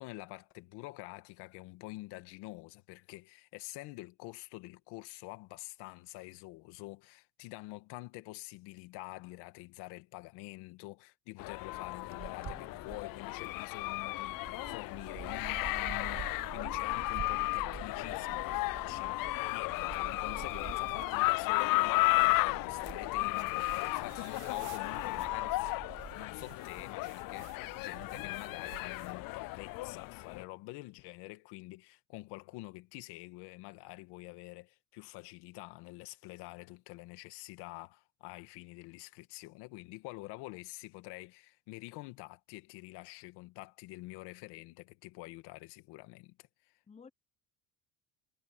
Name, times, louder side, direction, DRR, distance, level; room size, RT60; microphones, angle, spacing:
voice 1, 0.0-46.7, left 21 dB, 75° left, 2.2 m, -47 dB
sound 1, 11.4-30.4, left 21 dB, 55° left, 0.5 m, -34 dB
sound 2, 11.8-26.1, right 8 dB, 30° right, 1.2 m, -48 dB
voice 2, 18.9-19.4 46.9-47.1, left 5 dB, 15° left, 0.9 m, -55 dB
sound 3, 20.3-22.6 23.3-25.3 26.0-29.2, right 16 dB, 65° right, 2.0 m, -56 dB
supercardioid pair, 85°, 40 cm